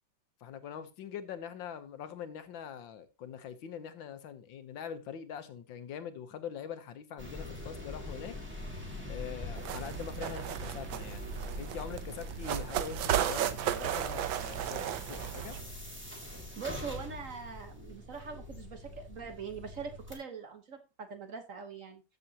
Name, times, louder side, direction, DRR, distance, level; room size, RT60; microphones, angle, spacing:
voice 1, 0.4-8.3 9.1-11.3 11.6-15.6, left 8 dB, 80° left, 1.7 m, -43 dB
sound 1, 7.2-20.1, left 2 dB, 5° right, 1.7 m, -44 dB
sound 2, 9.6-15.6, right 11 dB, 85° right, 1.5 m, -34 dB
voice 2, 16.6-22.0, right 5 dB, 50° right, 1.3 m, -42 dB
13.5 x 6.8 x 2.8 m
omnidirectional pair, 2.1 m